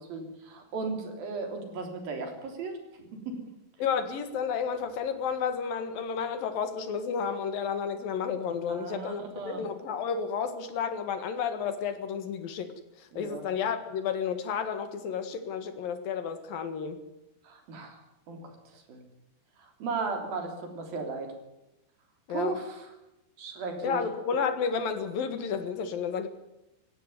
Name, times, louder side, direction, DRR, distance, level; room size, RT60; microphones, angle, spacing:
voice 1, 0.0-3.4 8.7-9.6 13.1-13.4 17.4-18.0 18.3-19.0 19.6-21.3 22.3-22.9 23.4-24.0, right 4 dB, 65° right, 4 dB, 5.2 m, -36 dB
voice 2, 3.8-12.7 13.0-17.0 22.3-22.6 23.8-26.3, left 6 dB, 65° left, 10 dB, 3.3 m, -31 dB
17.5 x 15.5 x 9.4 m, 0.94 s
omnidirectional pair, 4.6 m